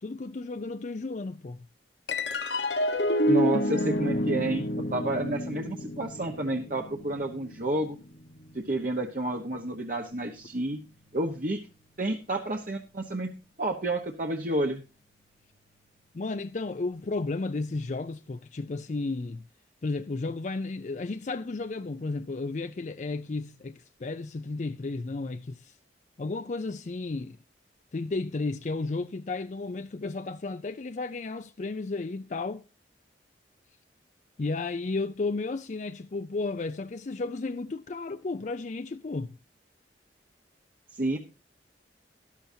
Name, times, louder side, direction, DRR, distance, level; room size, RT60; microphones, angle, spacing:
voice 1, 0.0-1.7 16.1-19.4 19.8-25.8 26.2-27.4 27.9-32.6 34.4-39.4, left 3 dB, 45° left, 0.4 m, -33 dB
sound 1, 2.1-8.8, left 1 dB, 85° left, 1.2 m, -29 dB
voice 2, 3.3-8.0 8.5-10.8 11.1-11.6 12.0-13.3 13.6-14.8 41.0-41.2, right 1 dB, 50° right, 1.1 m, -30 dB
13.5 x 12.0 x 2.7 m
head